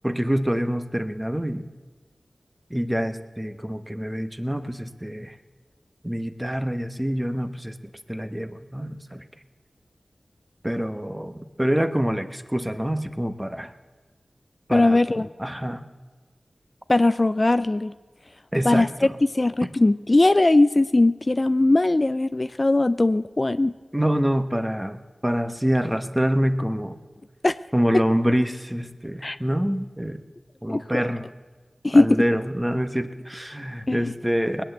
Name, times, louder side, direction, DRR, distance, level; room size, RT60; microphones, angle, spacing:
voice 1, 0.0-1.6 2.7-5.4 6.0-7.8 8.1-9.2 10.6-13.7 14.7-15.0 15.4-15.8 18.5-19.2 23.9-27.0 27.7-30.2 30.6-31.3 31.9-34.6, equal, 10° right, 9 dB, 1.1 m, -26 dB
voice 2, 14.7-15.3 16.9-17.9 18.6-19.1 19.3-23.7 27.4-27.6 29.2-29.4 30.7-31.1 31.8-32.2 33.9-34.1, left 2 dB, 40° left, 12 dB, 0.4 m, -20 dB
20.0 x 8.8 x 7.9 m, 1.4 s
cardioid pair, 40°, 0 cm